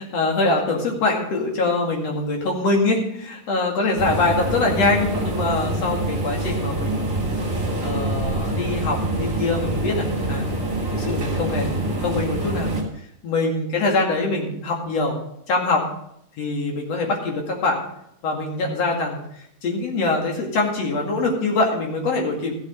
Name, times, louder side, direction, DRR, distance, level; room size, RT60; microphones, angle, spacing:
voice 1, 0.0-7.1 7.8-10.5 10.9-12.7 13.2-15.2 15.5-15.9 16.4-17.8 18.2-22.6, left 3 dB, 60° left, 0 dB, 3.3 m, -23 dB
sound 1, 4.0-12.8, right 2 dB, 35° right, 3.5 m, -25 dB
14.5 x 8.2 x 5.2 m, 0.74 s
omnidirectional pair, 3.3 m